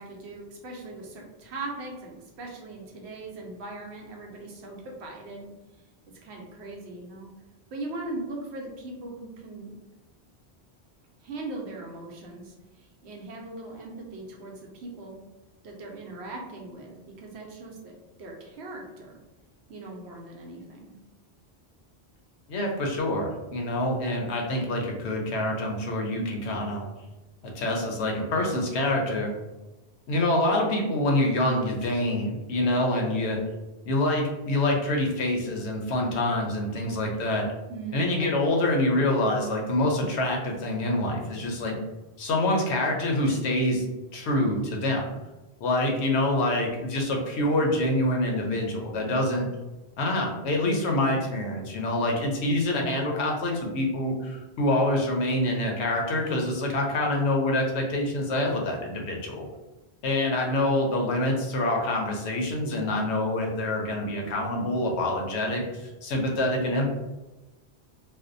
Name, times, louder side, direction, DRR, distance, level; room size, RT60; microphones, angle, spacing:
voice 1, 0.0-5.5 6.2-7.3 7.7-9.7 11.2-15.2 15.6-19.2 19.7-21.0 37.7-38.3, right 2 dB, 90° right, 0 dB, 0.9 m, -39 dB
voice 2, 22.5-26.8 27.4-29.3 30.1-33.4 33.8-37.5 37.9-41.8 42.2-43.8 44.1-45.1 45.6-49.5 50.0-59.5 60.0-66.9, left 1 dB, 90° left, 1 dB, 0.9 m, -26 dB
2.5 x 2.1 x 2.5 m, 1.1 s
omnidirectional pair, 1.1 m